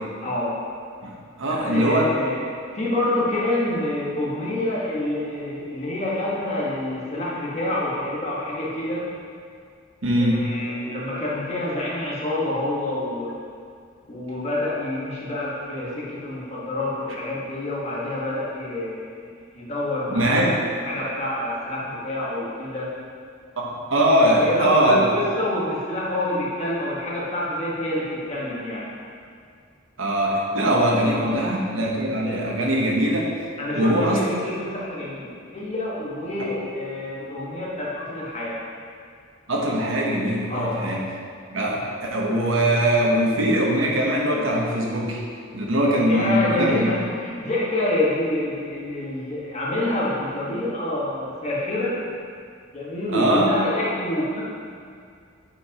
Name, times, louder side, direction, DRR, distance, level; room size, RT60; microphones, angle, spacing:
voice 1, 0.2-0.6 1.4-2.4 2.7-9.1 10.2-13.3 14.1-20.4 20.8-22.9 24.3-28.9 31.2-31.4 33.6-38.6 40.5-40.8 46.1-51.9 52.7-54.4, left 1 dB, 35° left, -6 dB, 1.5 m, -27 dB
voice 2, 1.4-2.2 10.0-10.5 20.1-20.6 23.6-25.1 30.0-33.3 33.7-34.2 39.5-41.0 41.5-45.2 45.5-46.9 53.1-53.6, right 1 dB, 85° right, -1 dB, 1.0 m, -21 dB
8.3 x 5.2 x 3.0 m, 2.2 s
head